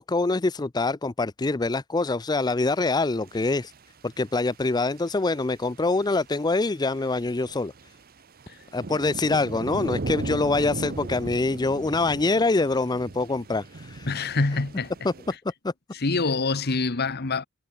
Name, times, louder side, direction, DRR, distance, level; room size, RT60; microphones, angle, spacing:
voice 1, 0.0-3.7 4.0-7.7 8.7-14.1 15.0-15.1 15.6-15.7, left 3 dB, 20° left, 0.5 m, -25 dB
sound 1, 2.6-2.7 3.1-4.4 4.7-15.4, right 2 dB, 45° right, 0.8 m, -37 dB
voice 2, 14.0-14.9 15.9-17.5, left 3 dB, 50° left, 1.1 m, -25 dB
head